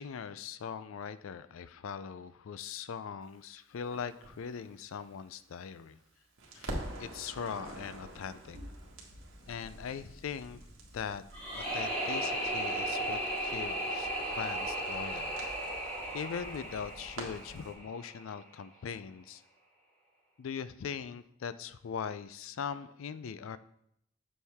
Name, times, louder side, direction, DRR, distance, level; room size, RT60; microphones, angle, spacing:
voice 1, 0.0-6.0 6.5-6.7 7.0-8.6 9.5-10.6 10.9-11.2 11.5-15.3 16.1-19.4 20.4-23.6, left 6 dB, 80° left, 14 dB, 0.4 m, -41 dB
Crackle, 3.9-6.1 6.4-17.7, right 1 dB, 90° right, 1.5 m, -47 dB
sound 1, 11.3-18.3, right 1 dB, 5° left, 2.2 m, -35 dB
7.2 x 6.4 x 3.5 m, 0.75 s
head